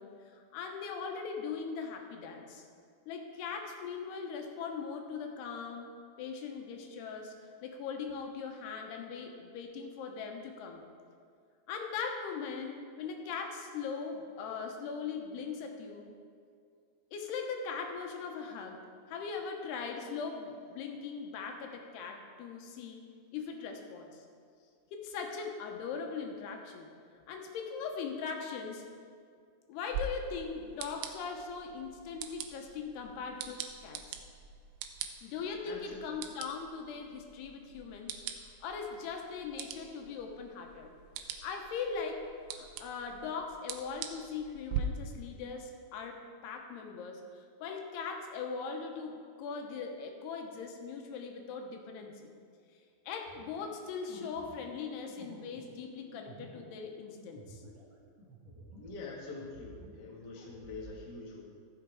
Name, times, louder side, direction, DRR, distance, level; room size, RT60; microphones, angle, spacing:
voice 1, 0.0-2.7 3.1-5.9 6.2-7.3 7.6-10.8 11.7-16.1 17.1-18.8 19.1-23.0 23.3-24.3 24.9-26.9 27.3-28.8 29.7-34.2 35.2-38.2 38.6-40.9 41.4-42.2 42.5-46.2 46.4-52.3 53.1-57.6, left 5 dB, 80° left, 3 dB, 3.0 m, -40 dB
sound 1, 29.9-44.8, right 8 dB, 75° right, 2.4 m, -44 dB
voice 2, 35.7-36.0 58.8-61.4, left 3 dB, 50° left, -3 dB, 1.3 m, -45 dB
sound 2, 53.2-59.0 59.3-60.9, right 1 dB, 60° right, 1.2 m, -53 dB
15.0 x 7.2 x 4.7 m, 2.2 s
omnidirectional pair, 4.7 m